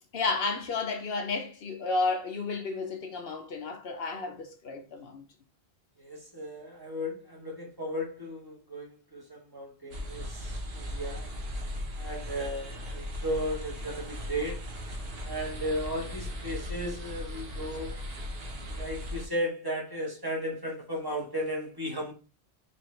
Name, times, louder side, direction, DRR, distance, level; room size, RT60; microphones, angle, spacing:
voice 1, 0.1-5.2, left 3 dB, 65° left, 0.9 m, -32 dB
voice 2, 6.0-11.3 12.0-14.7 15.2-18.0 18.7-22.1, equal, 20° right, 1.1 m, -35 dB
sound 1, 9.9-19.3, left 1 dB, 65° right, 1.1 m, -38 dB
4.3 x 3.1 x 3.1 m
omnidirectional pair, 1.1 m